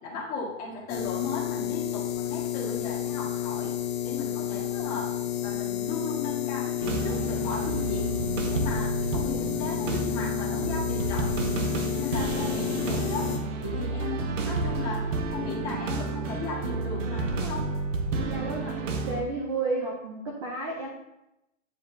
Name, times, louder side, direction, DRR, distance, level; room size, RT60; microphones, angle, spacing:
voice 1, 0.0-3.7 4.0-5.1 5.4-8.1 8.5-11.4 11.9-13.3 13.6-15.0 15.3-17.7, left 4 dB, 20° left, -4 dB, 1.6 m, -36 dB
sound 1, 0.9-13.4, left 12 dB, 40° left, 0.8 m, -31 dB
sound 2, 6.8-19.2, right 3 dB, 65° right, 1.0 m, -30 dB
voice 2, 18.3-20.9, right 3 dB, 25° right, -1 dB, 0.5 m, -32 dB
9.8 x 4.8 x 2.7 m, 0.91 s
hypercardioid pair, 165°, 41 cm